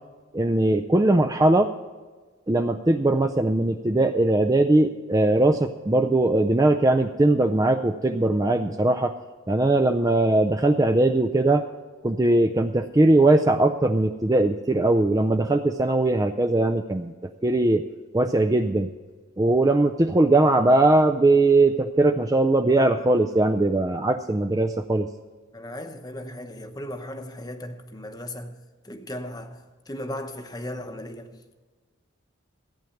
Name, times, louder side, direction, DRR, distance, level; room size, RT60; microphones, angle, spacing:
voice 1, 0.3-1.7 2.5-9.1 9.5-11.6 12.0-17.1 17.4-17.8 18.1-18.9 19.4-25.1, right 2 dB, 15° right, 0.4 m, -20 dB
voice 2, 25.5-31.6, left 1 dB, 20° left, 0.8 m, -37 dB
14.5 x 9.1 x 5.8 m
head